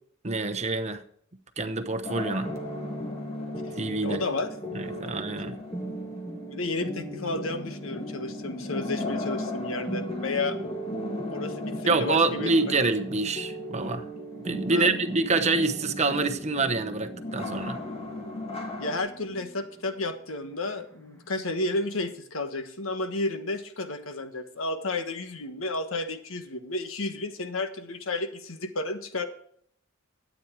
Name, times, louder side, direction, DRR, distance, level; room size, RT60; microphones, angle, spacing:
voice 1, 0.2-1.0 1.6-2.5 3.8-4.3 4.7-5.6 11.9-14.1 14.4-17.8, right 3 dB, 35° right, 1.0 m, -26 dB
sound 1, 2.0-19.0, left 2 dB, 30° left, 2.4 m, -39 dB
sound 2, 2.4-22.0, equal, 15° left, 1.5 m, -39 dB
voice 2, 4.0-4.5 6.5-10.6 11.3-12.5 14.7-14.9 18.8-29.2, left 2 dB, 70° left, 1.4 m, -32 dB
12.5 x 8.9 x 4.6 m
head